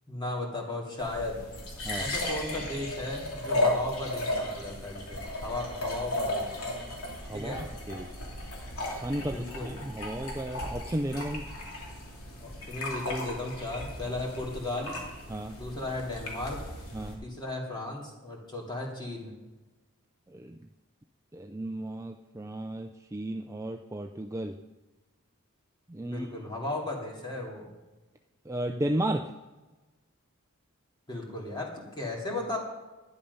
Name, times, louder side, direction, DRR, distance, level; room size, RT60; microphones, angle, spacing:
voice 1, 0.1-1.5 2.0-6.6 7.3-7.7 9.2-9.8 12.4-15.0 15.6-16.6 17.2-19.3 26.1-27.7 31.1-32.6, left 2 dB, 20° left, -2 dB, 2.6 m, -35 dB
sound 1, 1.0-17.1, left 1 dB, 85° left, 3.0 m, -35 dB
voice 2, 7.2-8.1 8.8-11.4 15.3-15.5 16.9-17.2 20.3-20.6 21.3-24.6 25.9-26.3 28.5-29.3, right 1 dB, 15° right, 5 dB, 0.4 m, -34 dB
12.0 x 10.5 x 5.5 m, 1.2 s
head